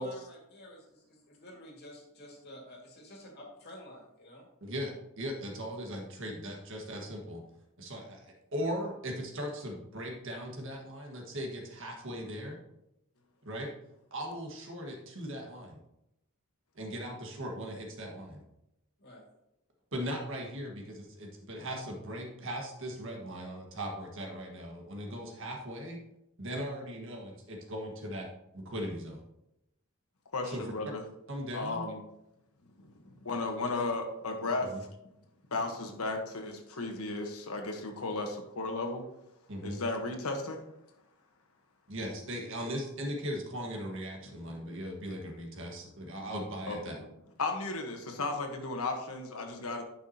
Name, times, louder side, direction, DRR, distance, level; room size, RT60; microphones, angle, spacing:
voice 1, 0.0-4.4 19.0-19.2, left 1 dB, 50° left, 0 dB, 2.1 m, -50 dB
voice 2, 4.6-7.4 7.8-12.6 13.4-13.7 14.1-15.8 16.7-18.4 19.9-26.0 26.4-28.3 28.5-29.2 30.4-30.6 31.3-31.8 34.6-34.8 39.5-39.8 41.9-47.0, equal, 60° right, 1 dB, 1.7 m, -39 dB
voice 3, 30.3-31.0 31.5-32.0 32.8-34.7 35.5-39.0 39.6-40.6 44.6-44.7 46.7-47.1 47.4-49.8, left 3 dB, 85° left, 3 dB, 1.3 m, -35 dB
10.5 x 5.8 x 2.9 m, 0.86 s
head